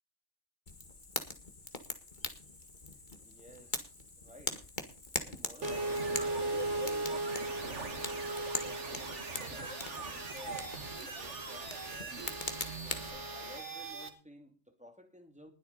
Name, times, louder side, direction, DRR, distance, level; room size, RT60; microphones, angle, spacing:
Fire, 0.7-13.1, left 3 dB, 40° left, 2.0 m, -42 dB
voice 1, 1.9-2.5 3.2-4.6 5.2-7.9 8.6-9.8 10.1-10.7 11.2-12.4 13.0-15.5, equal, 5° right, 2.6 m, -55 dB
sound 1, 5.6-14.1, right 2 dB, 80° right, 2.2 m, -37 dB
20.5 x 8.4 x 4.2 m
omnidirectional pair, 1.2 m